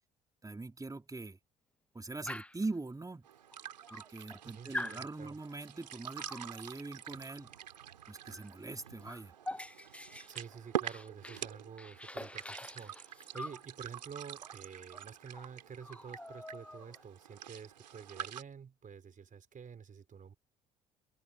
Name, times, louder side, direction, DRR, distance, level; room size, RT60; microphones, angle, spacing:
voice 1, 0.4-1.4 1.9-3.3 3.9-7.5 8.1-9.3, right 3 dB, 15° right, 4.7 m, -42 dB
Dog, 2.3-2.7 3.5-3.6 3.9-4.4 4.7-5.0 6.2-6.5 8.3-8.5 8.8-11.5 11.8-13.6 14.9-15.0 15.3-15.5 15.8-17.1, left 1 dB, 5° left, 0.7 m, -44 dB
sound 1, 3.2-18.4, right 10 dB, 90° right, 3.6 m, -46 dB
voice 2, 4.4-5.4 10.3-20.3, right 6 dB, 40° right, 4.8 m, -49 dB
hypercardioid pair, 55°, 21 cm